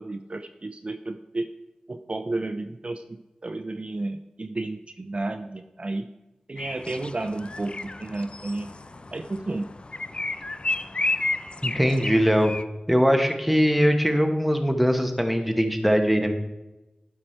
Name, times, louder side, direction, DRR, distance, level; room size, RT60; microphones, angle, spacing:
voice 1, 0.0-1.5 1.9-6.1 6.5-8.7 9.1-9.7, right 2 dB, 45° right, 7 dB, 0.5 m, -32 dB
sound 1, 6.6-12.6, left 2 dB, 40° left, 0.4 m, -32 dB
voice 2, 11.6-12.5 12.9-16.3, equal, ahead, 5 dB, 1.1 m, -21 dB
11.5 x 4.9 x 4.4 m, 1.0 s
wide cardioid pair, 50°, 3 cm